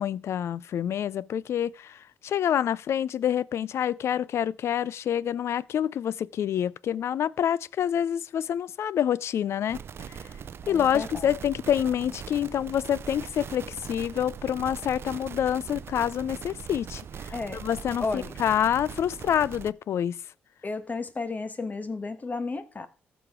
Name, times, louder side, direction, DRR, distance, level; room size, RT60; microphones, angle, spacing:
voice 1, 0.0-9.8 10.1-10.2 10.7-17.3 17.6-20.2, left 9 dB, 70° left, 0.3 m, -27 dB
sound 1, 9.7-19.7, right 7 dB, 55° right, 0.5 m, -41 dB
voice 2, 10.6-11.3 17.3-17.6 18.0-18.3 20.6-22.9, left 3 dB, 35° left, 1.2 m, -33 dB
15.0 x 5.0 x 3.6 m
supercardioid pair, 55°, 5 cm